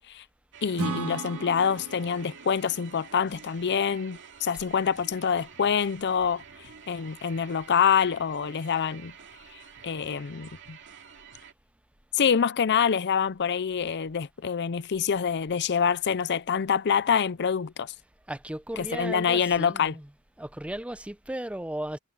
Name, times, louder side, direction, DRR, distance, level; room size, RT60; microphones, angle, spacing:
sound 1, 0.5-11.5, right 6 dB, 60° right, 2.5 m, -49 dB
voice 1, 0.6-6.4 6.9-9.1 9.8-10.8 12.1-17.9 18.8-19.9, left 7 dB, 55° left, 0.5 m, -26 dB
Acoustic guitar / Strum, 0.8-4.4, right 3 dB, 85° right, 1.9 m, -37 dB
voice 2, 18.3-20.1 20.4-22.0, right 1 dB, 5° right, 0.6 m, -35 dB
head